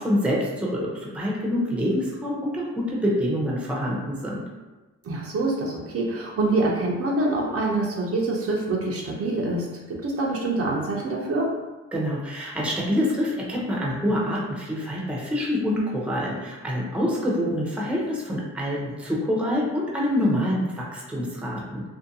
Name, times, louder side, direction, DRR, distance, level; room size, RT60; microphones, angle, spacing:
voice 1, 0.0-4.4 11.9-21.8, equal, 5° right, -4 dB, 0.6 m, -26 dB
voice 2, 5.0-11.5, right 2 dB, 50° right, -2 dB, 0.6 m, -25 dB
2.6 x 2.2 x 2.6 m, 1.2 s
cardioid pair, 90°, 30 cm